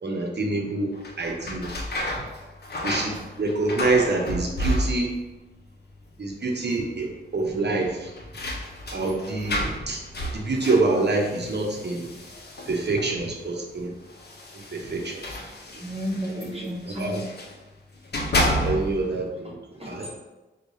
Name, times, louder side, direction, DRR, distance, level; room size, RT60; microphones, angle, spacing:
voice 1, 0.0-1.7 2.8-5.1 6.2-8.1 8.9-10.0 10.3-12.1 12.7-13.9 14.5-15.4 16.6-16.7 17.0-17.2 18.6-19.6 19.9-20.1, right 3 dB, 55° right, 1 dB, 0.8 m, -26 dB
sound 1, 0.9-5.4 5.6-6.3 6.6-6.7 7.8-13.2 14.1-17.6 18.0-19.1, equal, 50° left, 0.6 m, -31 dB
voice 2, 15.7-17.2 19.4-20.2, equal, 30° right, -2 dB, 0.9 m, -33 dB
4.6 x 2.3 x 2.7 m, 1.1 s
cardioid pair, 40°, 21 cm